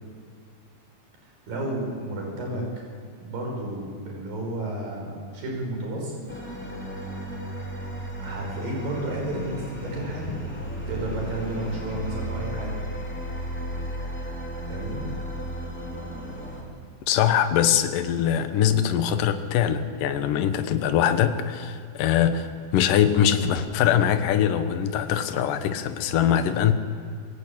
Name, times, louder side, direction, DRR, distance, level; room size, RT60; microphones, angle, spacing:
voice 1, 1.2-2.7 3.2-6.2 8.2-10.4 10.9-12.7 14.7-15.1, right 1 dB, 65° right, -1 dB, 7.6 m, -32 dB
sound 1, 6.3-16.6, equal, 5° left, 3.8 m, -34 dB
voice 2, 17.1-26.7, left 9 dB, 65° left, 9 dB, 2.7 m, -22 dB
25.0 x 22.5 x 8.8 m, 2.2 s
omnidirectional pair, 4.4 m